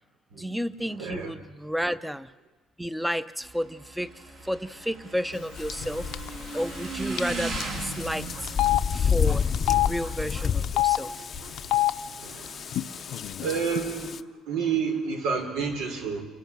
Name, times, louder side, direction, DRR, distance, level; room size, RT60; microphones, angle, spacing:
voice 1, 0.3-2.3 2.8-6.1 6.5-8.6 8.9-11.3, equal, 5° right, 13 dB, 0.8 m, -32 dB
voice 2, 1.0-1.3 9.7-9.9 11.7-11.8 12.2-16.2, right 6 dB, 85° right, 5 dB, 4.3 m, -31 dB
Motorcycle / Engine, 3.4-12.6, right 3 dB, 65° right, 6.0 m, -39 dB
sound 1, 5.6-14.2, left 7 dB, 35° left, 0.6 m, -31 dB
Telephone, 5.7-5.9 6.1-6.3 7.2-7.3 7.6-7.7 8.5-8.8 9.5-9.9 10.6-11.0 11.6-11.9 12.7-12.8 13.1-13.8, left 16 dB, 70° left, 0.7 m, -24 dB
29.0 x 17.0 x 7.4 m, 1.2 s
cardioid pair, 125°, 0 cm